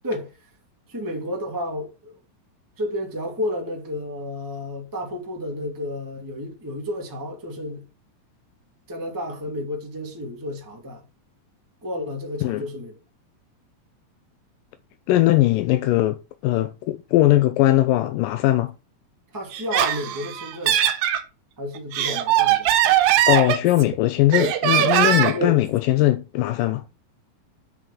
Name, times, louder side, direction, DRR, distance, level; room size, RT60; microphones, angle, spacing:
voice 1, 0.9-2.2 2.8-7.8 8.9-11.0 11.8-12.9 19.3-20.8 21.6-22.7 25.3-25.6, left 1 dB, 5° right, 1.9 m, -31 dB
voice 2, 15.1-18.7 23.3-26.8, left 15 dB, 80° left, 2.3 m, -20 dB
Laughter, 19.5-21.2 21.7-23.9 24.3-25.5, right 11 dB, 80° right, 2.7 m, -20 dB
7.8 x 6.1 x 5.0 m
omnidirectional pair, 4.0 m